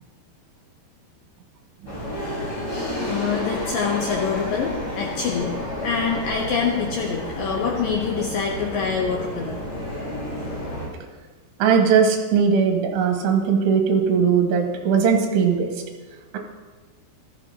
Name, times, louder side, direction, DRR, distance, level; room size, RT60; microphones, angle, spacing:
sound 1, 1.9-10.9, left 1 dB, 20° left, 4.9 m, -30 dB
voice 1, 3.0-5.6 5.8-9.6, left 6 dB, 75° left, 0 dB, 2.1 m, -25 dB
voice 2, 11.6-15.7, right 6 dB, 75° right, 2 dB, 3.3 m, -19 dB
15.0 x 13.0 x 2.8 m, 1.3 s
omnidirectional pair, 5.1 m